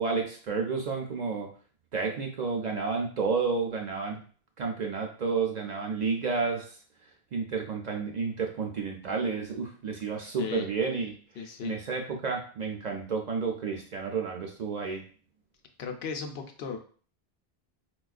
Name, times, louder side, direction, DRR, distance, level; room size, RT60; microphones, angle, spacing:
voice 1, 0.0-1.5 1.9-4.2 4.6-6.7 7.3-11.1 11.6-15.0, right 5 dB, 55° right, 2 dB, 0.5 m, -31 dB
voice 2, 10.4-10.7 11.4-11.8 15.8-16.8, left 5 dB, 80° left, 4 dB, 0.8 m, -36 dB
4.3 x 2.3 x 2.4 m, 0.43 s
omnidirectional pair, 1.0 m